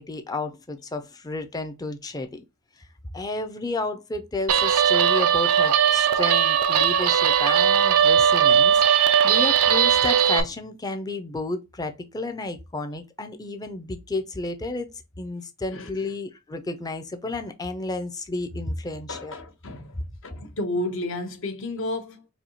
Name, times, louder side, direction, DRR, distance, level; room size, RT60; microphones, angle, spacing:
voice 1, 0.0-2.4 3.1-14.9 15.2-19.3, left 2 dB, 15° left, 0.4 m, -32 dB
Guitar, 4.5-10.4, right 8 dB, 80° right, 0.4 m, -19 dB
voice 2, 19.1-22.3, left 1 dB, 60° left, 0.8 m, -32 dB
4.2 x 2.7 x 2.8 m
head